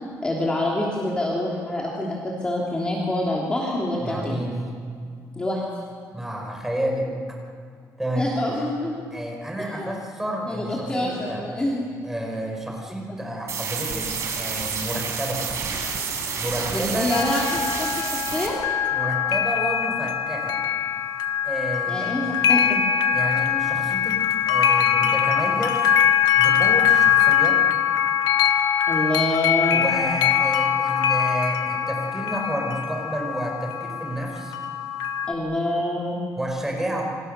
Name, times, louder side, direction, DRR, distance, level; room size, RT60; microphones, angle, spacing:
voice 1, 0.2-4.4 5.4-5.6 8.2-9.0 9.8-10.0 10.5-11.9 16.7-18.6 21.9-22.8 28.9-29.8 35.3-36.2, left 1 dB, 15° left, -3 dB, 2.9 m, -26 dB
voice 2, 4.0-4.5 6.1-7.1 8.0-8.4 9.1-11.4 12.0-15.4 16.3-17.2 18.9-20.6 21.4-22.1 23.1-25.8 26.3-27.6 29.7-34.5 36.4-37.0, right 1 dB, 5° right, 0 dB, 5.0 m, -30 dB
sound 1, 13.5-18.5, right 5 dB, 45° right, 4.6 m, -29 dB
sound 2, 17.1-35.3, left 9 dB, 85° left, 1.5 m, -22 dB
28.0 x 25.0 x 6.8 m, 2.1 s
cardioid pair, 175°, 7 cm